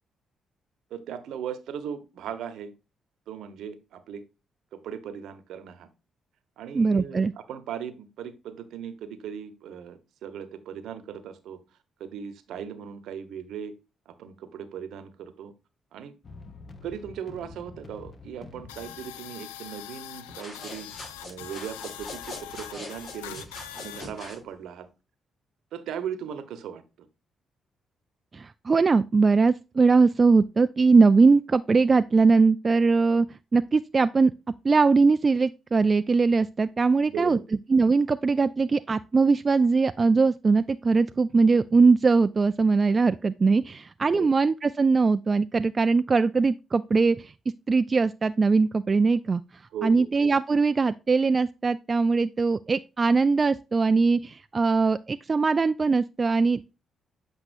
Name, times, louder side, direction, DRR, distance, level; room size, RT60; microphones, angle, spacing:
voice 1, 0.9-2.7 3.3-4.2 4.7-5.9 6.6-11.6 12.0-13.7 14.1-15.5 15.9-16.1 16.8-20.9 21.2-23.5 23.7-24.9 25.7-26.8 37.0-37.4 43.6-44.3 49.7-50.1, right 8 dB, 70° right, 1.0 m, -38 dB
voice 2, 6.7-7.3 28.3-33.3 33.5-34.3 34.6-37.4 37.7-47.3 47.7-49.4 49.8-56.7, right 4 dB, 40° right, 0.3 m, -21 dB
sound 1, 16.2-20.3, left 3 dB, 50° left, 1.2 m, -47 dB
sound 2, 18.7-24.0, left 13 dB, 90° left, 0.4 m, -42 dB
sound 3, 20.3-24.4, left 2 dB, 65° left, 3.3 m, -42 dB
8.1 x 5.2 x 2.6 m
hypercardioid pair, 45°, 0 cm